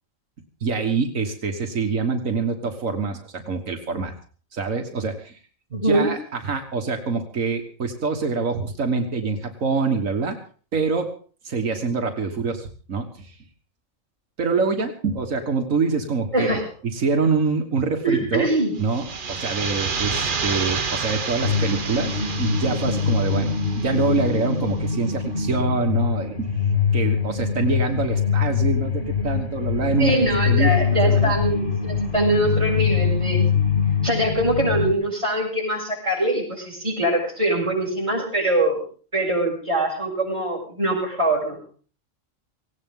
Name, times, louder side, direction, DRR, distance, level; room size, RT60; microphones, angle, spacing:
voice 1, 0.6-4.1 4.5-5.4 5.7-10.4 10.7-11.1 11.4-13.4 14.4-16.6 16.9-18.5 18.8-22.1 22.4-26.5 26.9-31.4, right 4 dB, 85° right, 4 dB, 2.0 m, -25 dB
voice 2, 5.7-6.1 16.3-16.6 18.0-18.7 30.0-33.4 34.0-38.8 39.1-41.6, right 1 dB, 25° right, -1 dB, 6.2 m, -23 dB
sound 1, 18.8-24.5, right 5 dB, 40° right, 1.2 m, -29 dB
sound 2, 21.4-34.9, left 6 dB, 40° left, 2.4 m, -23 dB
18.0 x 17.5 x 3.8 m, 0.41 s
omnidirectional pair, 1.3 m